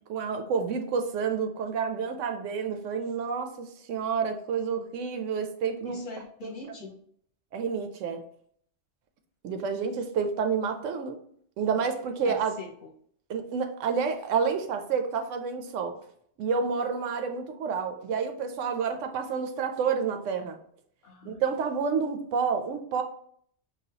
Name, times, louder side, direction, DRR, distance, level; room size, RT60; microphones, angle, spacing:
voice 1, 0.1-6.0 6.4-6.5 7.5-8.2 9.4-11.2 11.6-12.5 13.3-16.0 16.4-20.6 21.2-23.0, right 6 dB, 80° right, 6 dB, 0.9 m, -29 dB
voice 2, 5.8-6.9 12.2-12.9 21.0-21.4, left 5 dB, 50° left, -2 dB, 0.8 m, -42 dB
4.8 x 2.3 x 2.8 m, 0.63 s
omnidirectional pair, 1.3 m